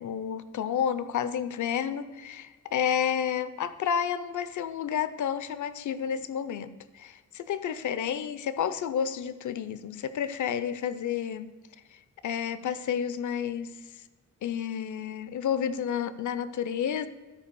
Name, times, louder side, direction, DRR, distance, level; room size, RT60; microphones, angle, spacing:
voice 1, 0.0-11.5 11.9-14.0 14.4-17.1, left 8 dB, 70° left, 13 dB, 0.6 m, -31 dB
13.0 x 4.5 x 6.8 m, 1.3 s
wide cardioid pair, 160°, 32 cm